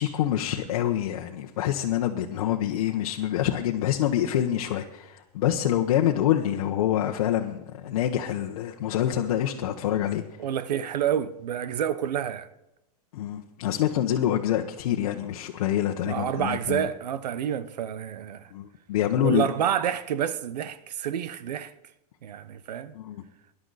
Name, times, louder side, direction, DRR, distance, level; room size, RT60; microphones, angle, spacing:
voice 1, 0.0-10.2 13.1-16.9 18.5-19.5 22.9-23.2, left 11 dB, 60° left, 1.1 m, -26 dB
voice 2, 10.4-12.5 16.1-18.5 19.2-21.7 22.2-22.9, right 9 dB, 90° right, 1.1 m, -28 dB
19.0 x 11.0 x 4.1 m
supercardioid pair, 160°, 20 cm